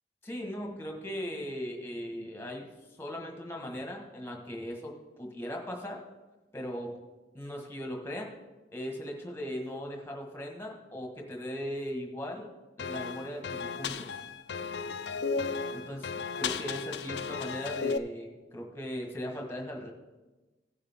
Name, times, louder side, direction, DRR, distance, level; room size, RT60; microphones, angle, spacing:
voice 1, 0.2-2.7 3.0-6.0 6.5-6.9 7.3-8.3 8.7-12.5 12.8-14.2 15.7-16.1 16.4-19.9, equal, 15° left, 1 dB, 1.4 m, -38 dB
sound 1, 12.8-18.0, left 5 dB, 75° left, 0.5 m, -34 dB
16.5 x 6.7 x 3.6 m, 1.2 s
head